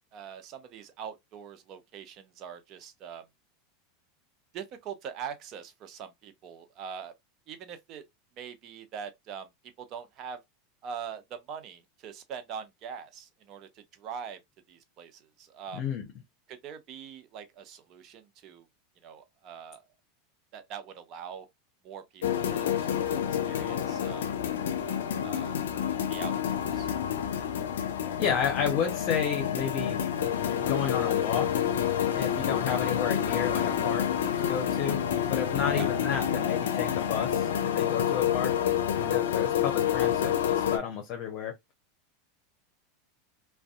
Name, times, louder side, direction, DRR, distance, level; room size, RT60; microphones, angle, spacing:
voice 1, 0.1-3.3 4.5-7.1 7.5-8.0 8.4-9.5 9.8-10.4 10.8-14.4 14.7-15.8 16.5-18.7 19.0-19.8 20.5-21.5 21.8-22.9 23.4-24.3 24.8-25.6 26.1-26.9 35.7-35.9, right 7 dB, 45° right, 0.6 m, -43 dB
voice 2, 15.7-16.1 28.2-30.0 30.7-31.6 32.2-35.0 35.3-38.5 39.0-41.5, left 8 dB, 50° left, 0.7 m, -31 dB
sound 1, 22.2-40.8, left 9 dB, 80° left, 0.4 m, -28 dB
2.5 x 2.2 x 2.3 m
hypercardioid pair, 100°, 0 cm